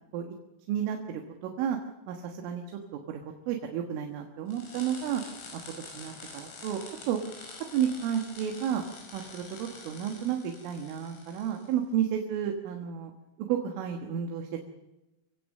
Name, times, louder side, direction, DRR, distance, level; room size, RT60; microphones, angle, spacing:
voice 1, 0.7-1.8 2.1-2.6 3.1-5.2 5.8-6.8 7.1-7.2 7.7-8.8 9.1-13.1 13.4-14.7, right 9 dB, 80° right, 3 dB, 3.9 m, -31 dB
sound 1, 4.5-11.7, left 3 dB, 80° left, 8.2 m, -47 dB
26.0 x 16.5 x 6.6 m, 0.99 s
omnidirectional pair, 5.7 m